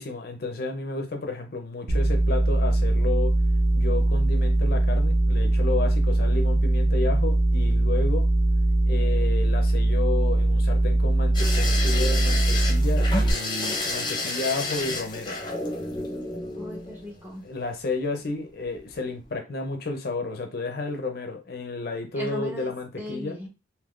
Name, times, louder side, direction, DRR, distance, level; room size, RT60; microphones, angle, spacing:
voice 1, 0.0-3.3 3.7-8.2 8.9-15.4 17.4-23.4, left 3 dB, 55° left, 5 dB, 0.5 m, -32 dB
sound 1, 1.9-13.3, right 2 dB, 75° right, 0.6 m, -21 dB
sound 2, 11.3-17.4 18.6-19.0 19.2-19.3, left 2 dB, 25° left, 0.7 m, -31 dB
voice 2, 16.5-17.4 22.1-22.7 23.0-23.5, left 1 dB, 10° right, -1 dB, 0.9 m, -37 dB
3.5 x 2.8 x 2.4 m, 0.28 s
head